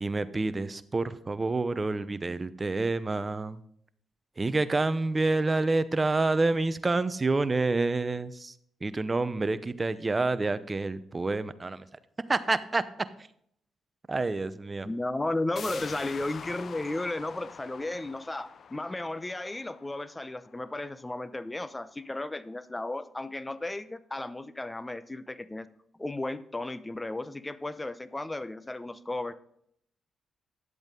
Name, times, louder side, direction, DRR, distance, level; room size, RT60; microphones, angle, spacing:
voice 1, 0.0-3.6 4.4-8.5 8.8-11.9 12.3-12.8 14.1-14.9, right 3 dB, 30° right, 14 dB, 0.7 m, -28 dB
voice 2, 14.8-25.7 26.0-29.3, left 2 dB, 15° left, 15 dB, 0.7 m, -34 dB
sound 1, 15.6-21.0 21.4-21.5, left 6 dB, 60° left, 0.4 m, -45 dB
11.0 x 7.9 x 3.8 m, 0.68 s
supercardioid pair, 65°, 0 cm